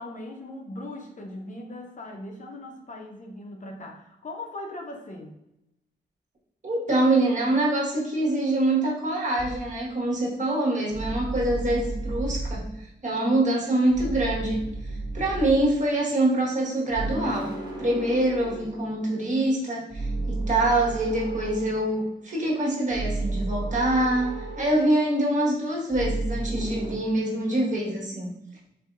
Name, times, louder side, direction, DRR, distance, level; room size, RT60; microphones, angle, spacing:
voice 1, 0.0-5.4, left 1 dB, 45° left, 2 dB, 0.6 m, -39 dB
voice 2, 6.6-14.6 15.1-28.3, right 1 dB, 40° right, -4 dB, 1.3 m, -25 dB
sound 1, 9.4-9.8 10.9-12.8 13.9-15.9 16.9-19.4 19.9-22.2 22.9-25.2 25.9-27.0, right 2 dB, 25° right, 1.0 m, -33 dB
4.2 x 2.6 x 2.4 m, 0.85 s
wide cardioid pair, 90°, 19 cm